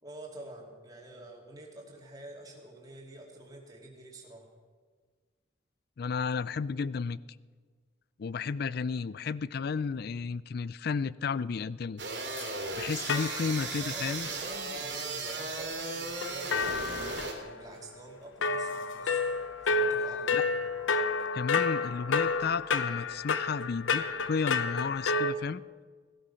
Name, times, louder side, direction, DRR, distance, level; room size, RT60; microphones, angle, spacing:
voice 1, 0.0-4.5 13.1-19.2 19.6-20.6, right 1 dB, 20° right, -1 dB, 2.6 m, -47 dB
voice 2, 6.0-7.2 8.2-12.0 12.8-14.3 20.3-20.4 21.3-25.6, left 5 dB, 55° left, 19 dB, 0.4 m, -33 dB
sound 1, 12.0-17.3, right 3 dB, 65° right, 2.7 m, -36 dB
sound 2, 12.4-12.5 13.1-13.9 14.2-14.3 16.2-17.8 18.4-25.3, left 4 dB, 85° left, 0.7 m, -30 dB
17.5 x 12.5 x 5.7 m, 1.5 s
head